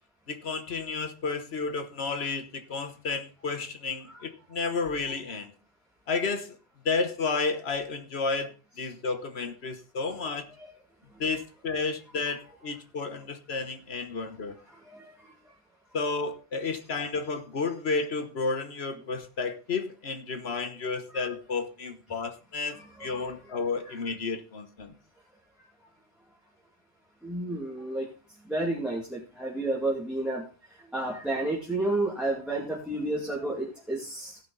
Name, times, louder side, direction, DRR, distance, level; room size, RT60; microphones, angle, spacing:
voice 1, 0.3-5.5 6.1-6.6 6.8-10.4 11.2-14.5 15.9-24.9, left 4 dB, 75° left, 8 dB, 1.5 m, -32 dB
voice 2, 14.9-15.3 21.1-21.2 22.7-23.3 27.2-28.1 28.5-30.4 30.9-34.4, right 2 dB, ahead, -4 dB, 2.3 m, -31 dB
17.0 x 6.0 x 4.0 m, 0.33 s
omnidirectional pair, 1.1 m